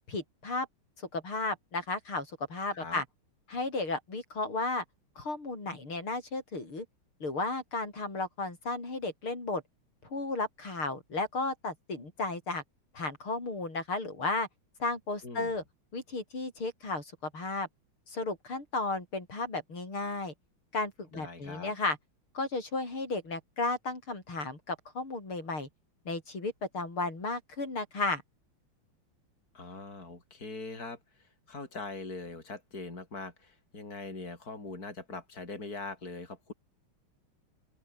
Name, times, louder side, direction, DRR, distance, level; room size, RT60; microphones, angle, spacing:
voice 1, 0.1-0.7 1.1-3.0 3.5-4.8 5.2-6.9 7.2-9.6 10.1-12.6 12.9-14.5 14.8-15.6 15.9-17.7 18.1-20.3 20.7-22.0 22.3-25.7 26.1-28.2, left 3 dB, 85° left, 7.6 m, -34 dB
voice 2, 15.2-15.5 21.1-21.7 29.5-36.5, left 3 dB, 45° left, 5.7 m, -42 dB
open air
omnidirectional pair, 2.3 m